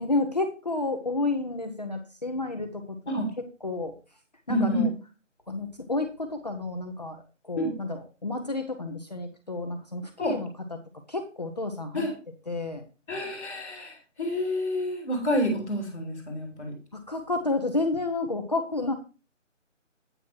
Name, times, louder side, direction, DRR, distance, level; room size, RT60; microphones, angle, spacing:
voice 1, 0.0-3.0 3.6-3.9 4.5-4.9 5.5-10.8 11.1-12.1 12.5-12.8 17.1-18.9, left 2 dB, 35° left, 4 dB, 0.8 m, -30 dB
voice 2, 4.5-4.9 7.6-7.7 10.2-10.3 11.9-12.1 13.1-16.7, equal, 5° left, -14 dB, 1.2 m, -28 dB
9.0 x 6.1 x 4.5 m, 0.33 s
figure-of-eight pair, 175°, 38 cm